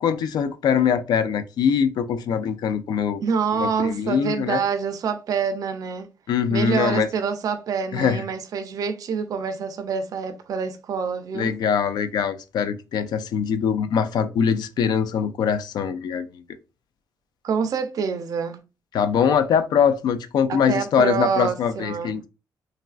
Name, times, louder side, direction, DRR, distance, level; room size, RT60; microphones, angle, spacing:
voice 1, 0.0-3.2 3.5-4.6 6.3-7.1 7.9-8.2 11.3-16.3 18.9-22.3, left 7 dB, 75° left, 0.3 m, -22 dB
voice 2, 3.2-6.1 6.5-11.5 17.4-18.6 20.5-22.2, right 6 dB, 55° right, 0.4 m, -26 dB
3.1 x 2.4 x 2.3 m
cardioid pair, 130°, 7 cm